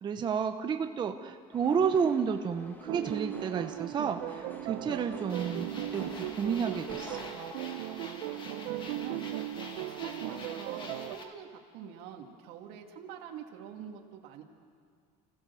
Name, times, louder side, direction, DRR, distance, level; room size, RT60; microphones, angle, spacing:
voice 1, 0.0-7.2, right 6 dB, 25° right, 7 dB, 0.8 m, -31 dB
sound 1, 1.5-7.3, left 1 dB, 10° left, 1.6 m, -50 dB
sound 2, 2.9-11.2, right 14 dB, 85° right, 0.8 m, -37 dB
sound 3, 5.3-11.2, left 3 dB, 25° left, 2.2 m, -46 dB
voice 2, 8.0-9.2 9.7-14.4, right 8 dB, 70° right, 2 dB, 2.2 m, -46 dB
28.0 x 15.5 x 7.0 m, 2.2 s
cardioid pair, 140°, 18 cm